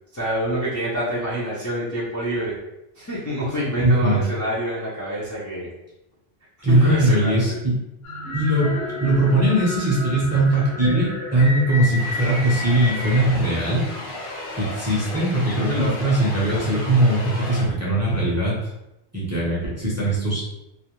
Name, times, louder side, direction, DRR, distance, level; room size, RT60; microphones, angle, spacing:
voice 1, 0.1-2.5 3.0-5.7 6.7-7.6, equal, 25° left, -9 dB, 0.5 m, -26 dB
voice 2, 3.8-4.2 6.6-7.8 8.3-13.8 14.5-18.6 19.1-20.4, right 1 dB, 20° right, -7 dB, 0.6 m, -20 dB
sound 1, 8.0-13.2, left 2 dB, 80° left, 1.2 m, -31 dB
wooshing vortex, 12.0-17.6, left 1 dB, 60° left, 0.8 m, -34 dB
2.4 x 2.0 x 2.9 m, 0.91 s
omnidirectional pair, 1.0 m